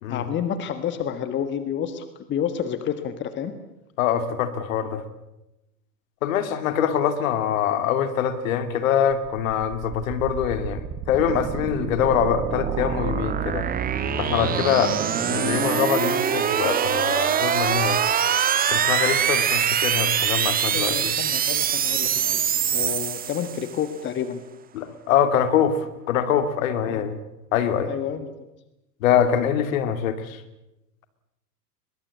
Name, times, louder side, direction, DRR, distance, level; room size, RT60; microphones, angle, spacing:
voice 1, 0.1-3.5 15.3-15.5 20.7-22.4 22.7-24.4 26.9-27.0 27.9-28.3, left 8 dB, 25° left, 11 dB, 1.6 m, -29 dB
voice 2, 4.0-5.0 6.2-13.7 14.2-15.0 15.3-18.0 18.7-21.1 24.7-27.2 27.5-27.9 29.0-30.4, left 8 dB, 55° left, 11 dB, 2.6 m, -24 dB
sound 1, 9.5-23.8, right 8 dB, 20° right, 1.4 m, -24 dB
22.5 x 22.0 x 8.5 m, 0.92 s
figure-of-eight pair, 100°, 49 cm